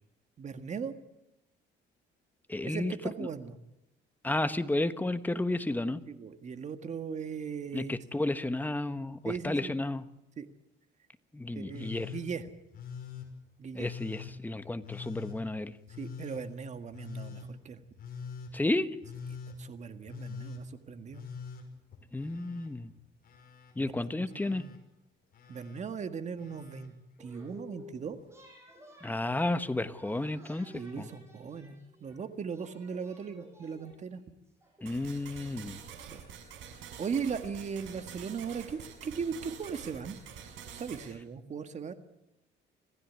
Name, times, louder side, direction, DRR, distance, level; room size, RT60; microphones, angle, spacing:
voice 1, 0.4-1.0 2.6-3.6 6.1-7.9 9.3-9.7 10.4-10.5 11.6-12.5 13.6-13.9 16.0-17.8 19.3-21.2 23.8-24.7 25.5-26.9 27.2-28.2 30.7-31.7 32.0-34.2 36.1-36.2 37.0-40.2 40.7-41.9, right 6 dB, 35° right, 10 dB, 1.8 m, -38 dB
voice 2, 2.5-2.9 4.2-6.0 7.7-10.0 11.3-12.1 13.7-15.7 18.5-18.9 22.1-22.9 23.8-24.6 29.0-31.1 34.8-35.8, left 2 dB, 10° left, 11 dB, 1.1 m, -32 dB
Telephone, 11.7-12.2 12.7-13.3 13.8-14.3 14.8-15.4 15.9-16.4 16.9-17.5 18.0-18.5 19.0-19.6 20.1-20.6 21.1-22.7 23.0-23.7 24.3-24.8 25.3-25.8 26.4-26.9 28.1-28.2, left 6 dB, 50° left, 5.8 m, -44 dB
sound 1, 27.2-28.0 28.3-32.2 32.5-34.8, left 1 dB, 15° right, 7.0 m, -54 dB
sound 2, 34.9-41.1, right 8 dB, 85° right, 5.9 m, -47 dB
26.5 x 16.0 x 9.5 m, 0.89 s
cardioid pair, 140°, 19 cm